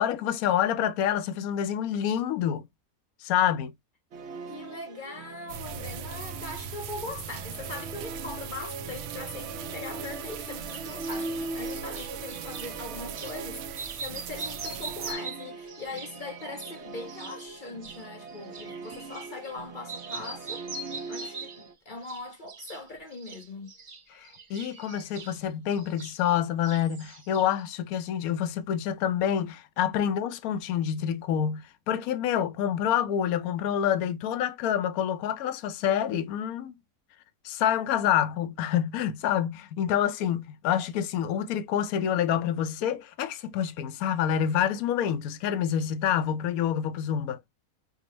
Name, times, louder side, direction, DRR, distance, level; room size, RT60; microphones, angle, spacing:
voice 1, 0.0-2.6 3.2-3.7 24.2-36.7 37.4-47.4, left 9 dB, 70° left, 1.1 m, -27 dB
Musical instrument, 4.1-21.7, right 3 dB, 60° right, 0.7 m, -41 dB
voice 2, 4.5-23.7, left 3 dB, 50° left, 0.6 m, -41 dB
sound 1, 5.5-15.1, right 8 dB, 80° right, 1.1 m, -40 dB
sound 2, 10.4-12.7 13.1-13.4 13.7-19.6 19.8-21.7 22.0-22.8 23.1-26.4 26.6-27.7, right 3 dB, 25° right, 0.7 m, -42 dB
6.1 x 2.1 x 2.9 m
omnidirectional pair, 1.6 m